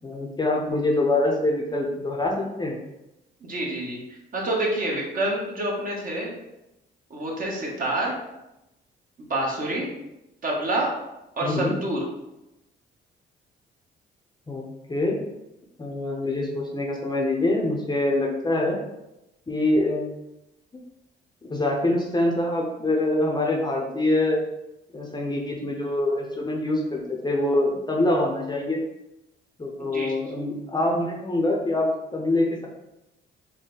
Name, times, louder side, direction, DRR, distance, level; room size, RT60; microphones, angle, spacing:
voice 1, 0.0-2.8 11.4-11.7 14.5-15.2 15.8-18.8 19.5-20.2 21.4-24.4 24.9-28.8 29.6-32.7, left 2 dB, 20° left, -1 dB, 0.7 m, -25 dB
voice 2, 3.4-4.0 4.3-6.3 7.1-8.2 9.2-9.9 10.4-11.0 11.4-12.0 29.8-30.1, right 1 dB, 45° right, -3 dB, 1.2 m, -27 dB
4.1 x 2.2 x 3.9 m, 0.92 s
cardioid pair, 90°, 20 cm